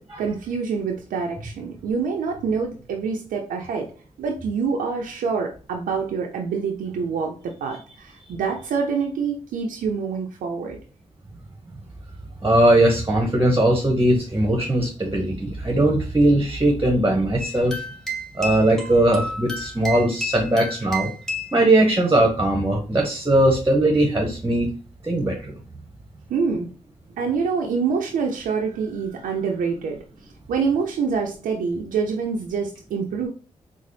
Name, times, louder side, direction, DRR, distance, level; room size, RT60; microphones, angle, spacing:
voice 1, 0.0-3.9 4.2-10.8 26.3-26.7 27.1-30.0 30.5-33.3, right 5 dB, 90° right, 1 dB, 0.5 m, -26 dB
voice 2, 12.4-17.8 18.3-21.1 21.5-24.7 25.0-25.6, right 1 dB, 20° right, 1 dB, 1.0 m, -19 dB
sound 1, 17.4-21.6, left 1 dB, 5° left, 1.2 m, -31 dB
3.8 x 2.0 x 3.3 m, 0.37 s
cardioid pair, 55°, 13 cm